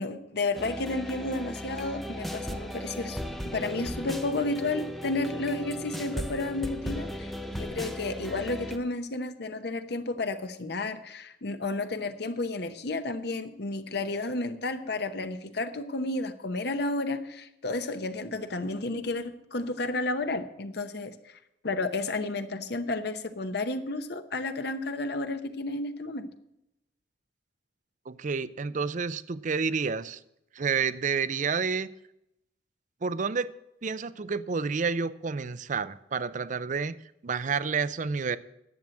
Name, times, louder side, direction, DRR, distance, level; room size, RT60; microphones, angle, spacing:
voice 1, 0.0-3.2 3.4-21.4 21.6-26.3, left 2 dB, 60° left, 8 dB, 0.9 m, -32 dB
sound 1, 0.6-8.8, equal, ahead, 0.7 m, -36 dB
voice 2, 28.1-30.2 30.5-31.9 33.0-33.5 33.8-36.9 37.2-38.4, right 5 dB, 45° right, 16 dB, 0.5 m, -29 dB
10.5 x 7.4 x 7.6 m, 0.83 s
head